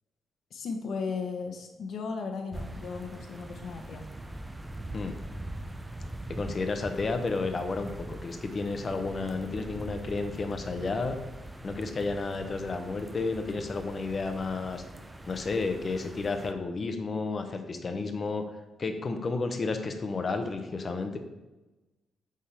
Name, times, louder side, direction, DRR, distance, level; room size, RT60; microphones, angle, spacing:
voice 1, 0.5-4.0, left 4 dB, 60° left, 4 dB, 1.0 m, -36 dB
sound 1, 2.5-16.5, right 1 dB, 10° right, 0.5 m, -42 dB
voice 2, 6.3-11.2 11.6-14.8 15.2-18.4 18.8-21.2, left 3 dB, 35° left, 6 dB, 0.8 m, -32 dB
8.4 x 3.7 x 4.4 m, 1.1 s
cardioid pair, 140°, 0 cm